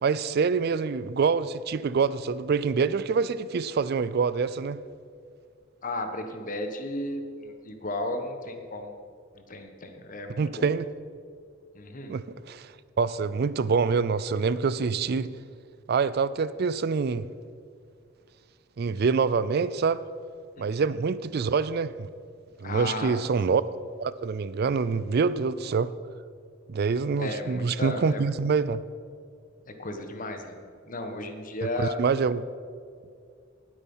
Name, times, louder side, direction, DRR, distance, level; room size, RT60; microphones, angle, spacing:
voice 1, 0.0-4.8 10.4-10.9 12.1-12.7 13.0-15.3 15.9-17.3 18.8-20.0 20.6-22.1 22.6-23.6 24.0-25.9 26.7-28.8 31.8-32.4, right 5 dB, 50° right, 16 dB, 0.4 m, -26 dB
voice 2, 5.8-8.9 9.3-10.7 11.7-12.2 20.6-20.9 22.6-23.2 27.2-28.3 29.7-30.6 30.9-32.0, left 2 dB, 45° left, 6 dB, 1.4 m, -34 dB
19.0 x 8.4 x 5.6 m, 2.2 s
head